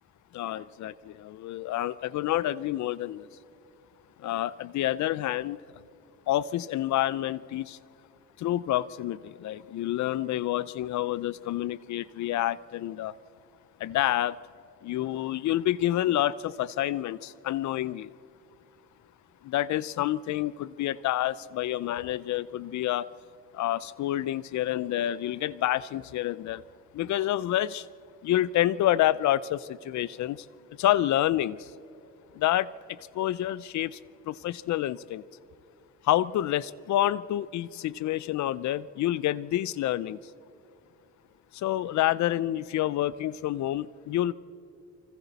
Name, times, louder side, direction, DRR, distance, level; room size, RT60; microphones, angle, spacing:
voice 1, 0.3-3.3 4.2-5.6 6.3-7.8 8.4-13.1 13.8-14.4 14.8-18.1 19.4-23.1 23.5-26.6 26.9-27.9 28.2-30.5 30.8-31.7 32.3-34.0 34.3-35.2 36.0-40.2 41.5-44.3, left 13 dB, 70° left, 20 dB, 0.5 m, -28 dB
27.5 x 25.0 x 4.1 m, 2.7 s
cardioid pair, 90°, 30 cm